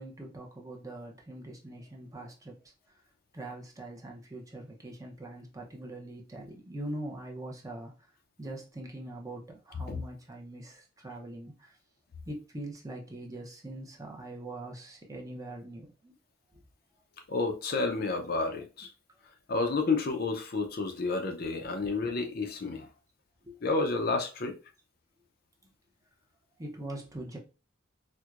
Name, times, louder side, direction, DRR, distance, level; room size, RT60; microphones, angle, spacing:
voice 1, 0.0-2.6 3.3-7.9 8.4-11.8 12.3-16.1 23.4-23.6 26.6-27.4, right 1 dB, 15° right, 0.6 m, -42 dB
voice 2, 17.3-18.9 19.5-22.9 23.6-24.6, left 3 dB, 50° left, 0.5 m, -30 dB
4.4 x 2.1 x 2.4 m
head